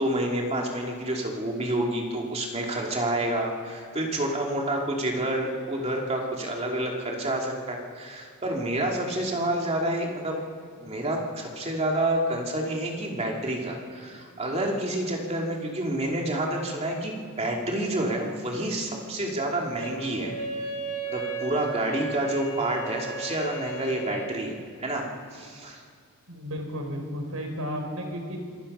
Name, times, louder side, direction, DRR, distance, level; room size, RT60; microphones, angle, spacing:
voice 1, 0.0-10.4 10.8-20.4 21.1-25.8, right 1 dB, 30° right, 0 dB, 2.7 m, -29 dB
Wind instrument woodwind instrument, 19.8-24.5, right 4 dB, 70° left, 2.4 m, -35 dB
voice 2, 26.3-28.4, equal, 80° right, 4 dB, 4.1 m, -33 dB
26.0 x 20.0 x 5.6 m, 2.2 s
head